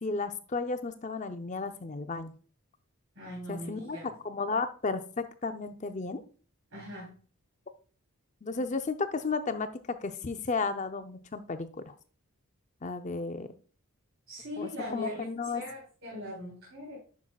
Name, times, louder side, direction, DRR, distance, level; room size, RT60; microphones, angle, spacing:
voice 1, 0.0-2.3 3.5-4.0 4.2-6.2 8.4-9.7 10.0-11.9 12.8-13.5 14.6-15.6, left 4 dB, 35° left, 9 dB, 0.5 m, -33 dB
voice 2, 3.1-4.1 6.7-7.1 14.3-15.2 15.5-17.0, left 1 dB, 60° right, -6 dB, 3.2 m, -40 dB
9.8 x 6.0 x 2.3 m, 0.41 s
head